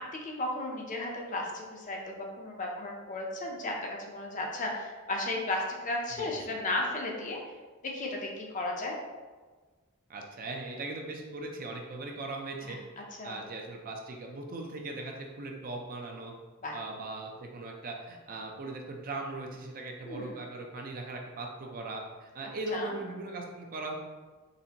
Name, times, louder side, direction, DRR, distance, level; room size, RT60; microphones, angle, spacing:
voice 1, 0.1-7.4 7.8-9.0 12.7-12.8 13.2-13.4 16.6-16.8 20.0-20.4 22.7-22.9, left 2 dB, 35° left, 0 dB, 0.6 m, -34 dB
voice 2, 6.1-6.6 10.1-12.8 13.2-16.3 16.7-23.9, right 2 dB, 40° right, 1 dB, 0.5 m, -39 dB
4.0 x 3.3 x 2.8 m, 1.3 s
head